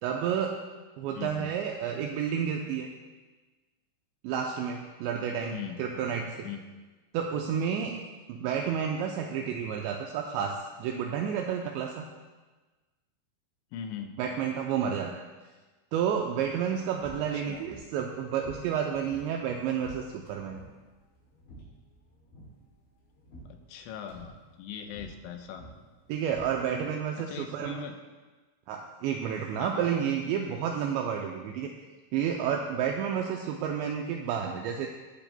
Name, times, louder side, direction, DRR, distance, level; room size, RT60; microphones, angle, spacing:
voice 1, 0.0-0.6 1.0-2.9 4.2-6.5 7.1-8.0 8.3-12.1 14.2-15.1 15.9-20.6 26.1-27.9 28.7-31.7 32.1-34.9, right 8 dB, 80° right, 1 dB, 2.7 m, -30 dB
voice 2, 1.2-1.5 5.5-5.8 6.4-6.6 13.7-14.2 17.3-17.6 23.5-25.7 27.2-28.0 29.6-29.9, left 8 dB, 90° left, 5 dB, 3.2 m, -40 dB
sound 1, 16.4-27.0, right 1 dB, 70° left, 4.6 m, -52 dB
18.0 x 8.8 x 2.2 m, 1.3 s
omnidirectional pair, 5.3 m